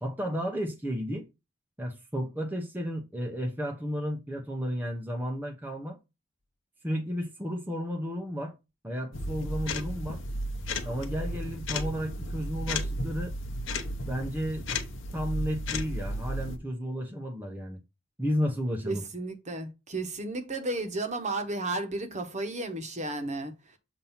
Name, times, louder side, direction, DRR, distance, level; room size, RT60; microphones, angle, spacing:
voice 1, 0.0-1.2 1.8-6.0 6.8-8.6 8.8-10.2 10.9-13.3 14.0-14.7 15.1-17.8 18.2-19.0, equal, 10° right, 0.7 m, -33 dB
sound 1, 9.1-16.6, left 1 dB, 65° left, 0.9 m, -34 dB
voice 2, 18.8-23.8, right 2 dB, 35° right, 1.1 m, -33 dB
7.1 x 2.7 x 5.6 m
head